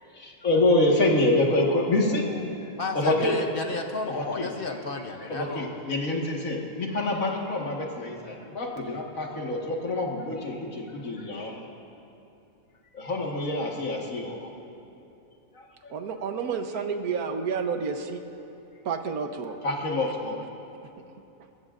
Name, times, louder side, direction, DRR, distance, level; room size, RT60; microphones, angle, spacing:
voice 1, 0.1-2.3 2.9-3.4 4.1-4.5 5.3-11.6 12.9-14.5 15.5-15.9 19.6-20.4, left 2 dB, 65° left, -1 dB, 2.1 m, -26 dB
voice 2, 2.3-5.8, left 3 dB, 50° left, 4 dB, 0.8 m, -33 dB
voice 3, 15.9-18.2 18.8-19.6, right 5 dB, 90° right, 6 dB, 1.5 m, -30 dB
22.0 x 20.5 x 2.5 m, 2.8 s
omnidirectional pair, 1.5 m